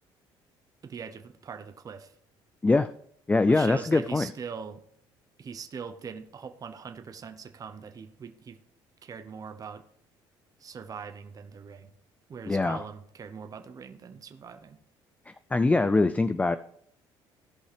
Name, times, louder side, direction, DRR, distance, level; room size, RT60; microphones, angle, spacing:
voice 1, 0.8-2.2 3.5-4.8 5.4-8.6 9.0-9.8 10.6-11.9 12.3-14.8, right 6 dB, 40° right, 8 dB, 0.8 m, -41 dB
voice 2, 3.3-4.3 12.5-12.8 15.3-16.6, left 3 dB, 15° left, 12 dB, 0.3 m, -23 dB
16.0 x 5.5 x 3.3 m, 0.67 s
supercardioid pair, 85°, 10 cm